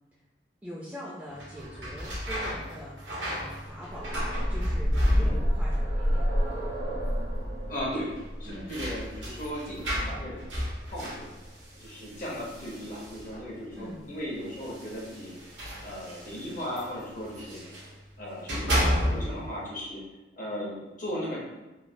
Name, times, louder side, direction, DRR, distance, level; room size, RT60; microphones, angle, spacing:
voice 1, 0.6-3.0 3.3-4.1 4.5-6.4 8.5-8.8 13.8-14.0, equal, 10° right, -5 dB, 0.4 m, -42 dB
sound 1, 1.3-5.7 6.0-6.6 6.9-7.0 8.1-13.5 14.4-17.9 18.3-19.5, equal, 90° right, 0.9 m, -32 dB
sound 2, 3.7-11.5 12.6-12.7 13.1-13.2, equal, 65° right, 0.7 m, -30 dB
voice 2, 7.7-8.1 8.4-10.5 10.9-11.3 11.8-15.5 15.8-17.6 18.2-20.0 20.4-21.7, equal, 50° left, -4 dB, 0.6 m, -37 dB
3.1 x 2.2 x 2.6 m, 1.1 s
head